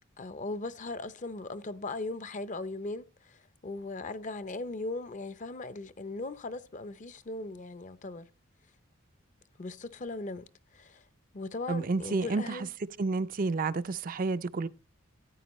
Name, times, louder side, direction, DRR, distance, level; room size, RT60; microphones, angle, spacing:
voice 1, 0.2-8.3 9.6-10.4 10.7-11.1 11.3-12.7, left 2 dB, 35° left, 0.6 m, -38 dB
voice 2, 11.7-12.7 13.0-14.7, right 3 dB, 40° right, 0.4 m, -30 dB
14.0 x 9.5 x 3.1 m
head